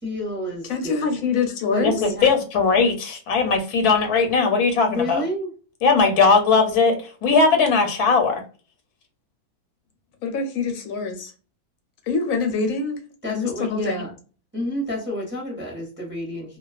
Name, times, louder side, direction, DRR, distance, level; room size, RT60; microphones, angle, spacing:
voice 1, 0.0-1.2 1.7-2.3 4.9-5.5 13.2-14.2 14.5-16.6, left 1 dB, 10° right, 0.6 m, -29 dB
voice 2, 0.7-2.0 10.2-11.3 12.1-13.0 13.3-14.0, left 4 dB, 70° left, 0.9 m, -25 dB
voice 3, 2.2-5.2 5.8-8.4, left 4 dB, 90° left, 1.1 m, -19 dB
2.3 x 2.3 x 2.3 m
omnidirectional pair, 1.6 m